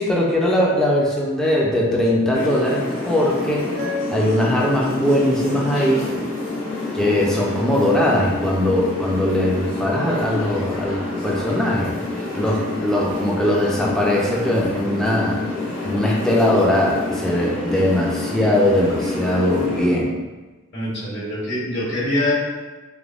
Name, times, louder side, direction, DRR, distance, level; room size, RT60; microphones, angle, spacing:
voice 1, 0.0-3.7 4.1-6.1 6.9-11.9 12.3-15.4 15.8-20.1, left 1 dB, 5° left, -4 dB, 0.4 m, -20 dB
sound 1, 2.3-19.9, left 2 dB, 75° left, 0.8 m, -27 dB
voice 2, 20.7-22.3, left 1 dB, 60° left, -9 dB, 1.1 m, -24 dB
3.3 x 2.1 x 2.4 m, 1.2 s
head